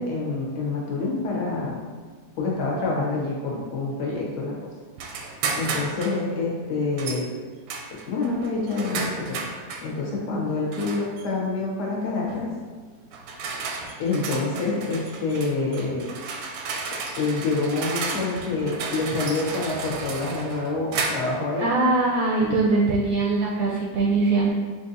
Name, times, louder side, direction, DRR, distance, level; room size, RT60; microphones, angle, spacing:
voice 1, 0.0-1.8 2.4-4.6 5.6-7.3 7.9-9.4 9.8-12.5 14.0-16.1 17.2-21.7, left 3 dB, 65° left, -4 dB, 1.4 m, -27 dB
sound 1, 5.0-6.2 7.0-7.2 7.7-9.9 10.7-11.2 12.3-12.5 13.1-21.4, right 4 dB, 85° right, 1.3 m, -33 dB
voice 2, 21.6-24.5, right 3 dB, 70° right, -4 dB, 0.8 m, -22 dB
6.2 x 2.6 x 2.6 m, 1.5 s
omnidirectional pair, 2.0 m